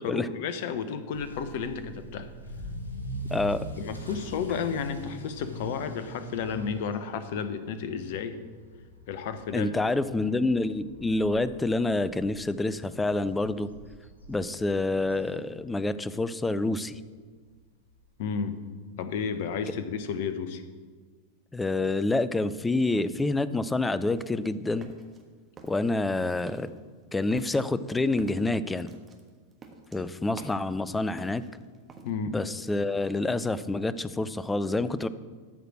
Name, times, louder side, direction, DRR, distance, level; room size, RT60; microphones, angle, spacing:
voice 1, 0.0-2.3 3.8-8.4 9.1-9.7 18.2-18.6 19.0-20.6 32.0-32.4, left 6 dB, 50° left, 11 dB, 0.8 m, -32 dB
Motor vehicle (road) / Accelerating revving vroom, 1.1-16.0 16.3-16.7 17.2-17.3 17.6-17.7 18.0-18.1 19.4-19.5, right 1 dB, 85° left, 1.8 m, -43 dB
voice 2, 3.3-3.7 9.5-13.7 14.3-17.0 21.5-24.9 25.7-26.7 27.1-28.9 29.9-31.4 32.3-35.1, left 2 dB, 10° left, 15 dB, 0.4 m, -27 dB
sound 1, 24.1-25.3 25.6-26.1 26.4-26.8 27.3-30.8 31.1-32.1, right 4 dB, 20° right, 1.3 m, -48 dB
13.0 x 5.0 x 6.2 m, 1.5 s
figure-of-eight pair, 90°, 0 cm